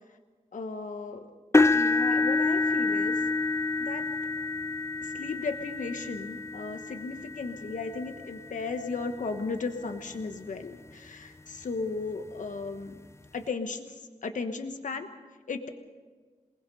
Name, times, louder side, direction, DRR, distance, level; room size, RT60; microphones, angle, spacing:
voice 1, 0.5-1.3 1.7-3.2 3.8-4.0 5.0-13.0 13.3-15.1 15.5-15.7, left 4 dB, 70° left, 6 dB, 1.2 m, -35 dB
sound 1, 1.5-9.6 10.2-10.4 10.9-11.0 12.4-12.5, left 3 dB, 20° left, 0.6 m, -28 dB
28.0 x 19.5 x 5.4 m, 1.4 s
wide cardioid pair, 110°, 13 cm